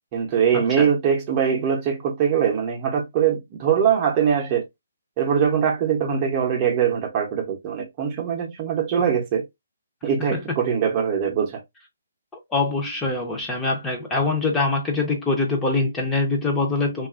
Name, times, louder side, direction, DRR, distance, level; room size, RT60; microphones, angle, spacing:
voice 1, 0.1-4.6 5.2-9.4 10.0-11.6, right 7 dB, 30° right, 0.7 m, -22 dB
voice 2, 12.5-17.1, left 3 dB, 10° left, 0.7 m, -23 dB
2.6 x 2.4 x 2.4 m
hypercardioid pair, 145°, 0 cm